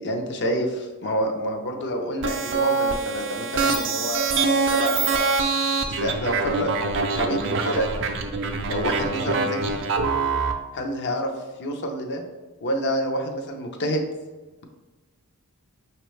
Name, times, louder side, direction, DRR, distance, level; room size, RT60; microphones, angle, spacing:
voice 1, 0.0-5.3 5.9-6.7 7.2-7.9 8.7-9.8 10.7-11.3 11.6-12.2 12.6-14.0, equal, 50° left, 4 dB, 0.6 m, -28 dB
sound 1, 2.2-10.5, right 4 dB, 55° right, 0.4 m, -24 dB
5.4 x 2.9 x 3.2 m, 1.2 s
head